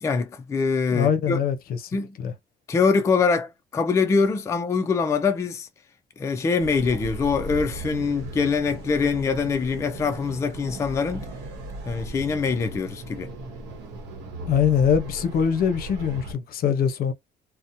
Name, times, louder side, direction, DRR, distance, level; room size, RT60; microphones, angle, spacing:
voice 1, 0.0-1.4 1.9-2.2 2.7-5.7 6.2-11.3 11.9-13.3, left 5 dB, 15° left, 0.3 m, -24 dB
voice 2, 0.9-1.8 2.2-2.3 14.5-17.1, left 7 dB, 60° left, 0.6 m, -23 dB
sound 1, 6.6-16.3, right 1 dB, 85° right, 0.9 m, -37 dB
2.7 x 2.0 x 2.5 m
cardioid pair, 110°, 17 cm